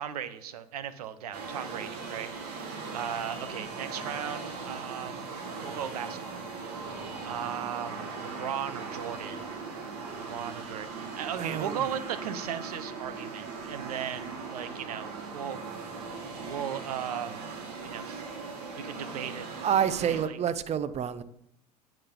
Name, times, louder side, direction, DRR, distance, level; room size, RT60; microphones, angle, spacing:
voice 1, 0.0-2.6 2.9-5.2 5.6-6.8 7.2-9.5 10.2-15.9 16.4-17.5 17.8-18.2 18.8-19.5 20.0-20.4, right 9 dB, 75° right, 12 dB, 0.8 m, -37 dB
sound 1, 1.3-20.2, right 4 dB, 60° right, 1.8 m, -39 dB
voice 2, 11.3-11.8 19.6-21.2, right 9 dB, 35° right, 13 dB, 0.7 m, -28 dB
8.6 x 6.1 x 5.1 m, 0.78 s
hypercardioid pair, 75°, 20 cm